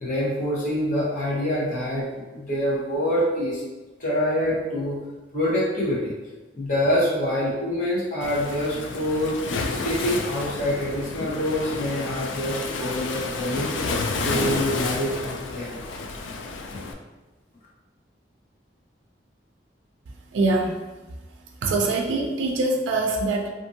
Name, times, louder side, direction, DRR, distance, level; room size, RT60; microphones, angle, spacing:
voice 1, 0.0-2.1 2.3-3.6 4.0-5.0 5.3-6.1 6.6-9.4 9.6-13.7 14.2-15.8, equal, 45° left, -6 dB, 0.9 m, -25 dB
Waves surf, 8.2-16.9, left 3 dB, 90° left, 0.3 m, -30 dB
voice 2, 20.3-20.8 21.6-23.5, right 2 dB, 85° right, 1 dB, 0.4 m, -23 dB
2.6 x 2.6 x 2.6 m, 1.2 s
head